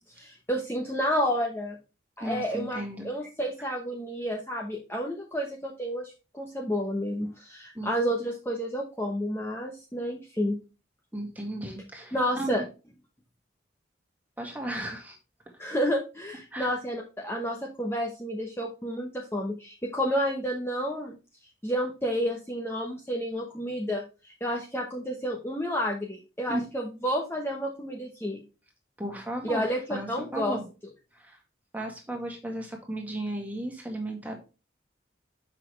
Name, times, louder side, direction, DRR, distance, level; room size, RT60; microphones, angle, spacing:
voice 1, 0.2-1.8 2.2-10.6 12.1-12.6 15.6-21.2 21.6-28.4 29.4-30.6, equal, 10° left, -1 dB, 0.9 m, -30 dB
voice 2, 2.2-3.1 7.7-7.9 11.1-12.7 14.4-15.2 16.5-16.7 26.5-26.6 29.0-29.6 29.9-30.6 31.1-31.4 31.7-34.4, right 1 dB, 10° right, 1 dB, 1.9 m, -35 dB
7.5 x 5.9 x 3.3 m, 0.31 s
head